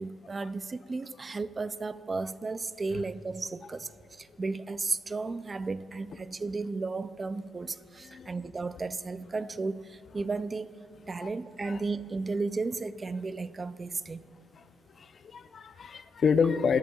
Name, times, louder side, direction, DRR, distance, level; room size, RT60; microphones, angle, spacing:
voice 1, 0.0-3.9 4.2-10.8 11.1-14.2, right 3 dB, 30° right, 0.4 m, -34 dB
voice 2, 14.9-16.8, left 6 dB, 50° left, 0.5 m, -29 dB
20.0 x 10.5 x 2.3 m
cardioid pair, 90°, 0 cm